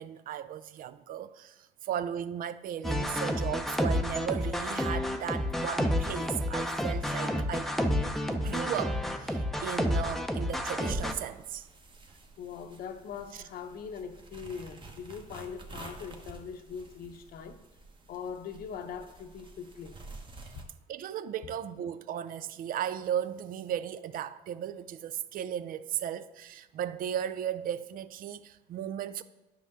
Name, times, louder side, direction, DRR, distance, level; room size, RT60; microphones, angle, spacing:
voice 1, 0.0-1.5 1.8-7.7 8.3-11.7 13.3-13.4 20.9-29.2, right 9 dB, 55° right, 0.4 m, -36 dB
sound 1, 2.8-11.1, left 1 dB, ahead, 0.6 m, -30 dB
sound 2, 10.8-20.6, right 2 dB, 30° right, 1.0 m, -47 dB
voice 2, 12.4-17.6 18.1-19.9, left 6 dB, 65° left, 0.8 m, -41 dB
9.8 x 5.7 x 3.6 m
cardioid pair, 110°, 17 cm